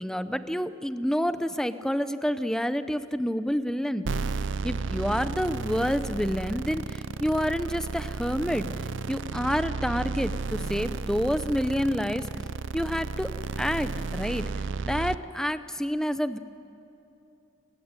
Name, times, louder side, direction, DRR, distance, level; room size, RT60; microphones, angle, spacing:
voice 1, 0.0-4.1 4.6-8.7 9.1-12.3 12.7-13.3 13.6-14.5 14.8-16.4, equal, 5° left, 11 dB, 0.7 m, -28 dB
sound 1, 4.1-15.2, right 4 dB, 70° right, 0.6 m, -33 dB
28.5 x 15.5 x 9.7 m, 2.8 s
head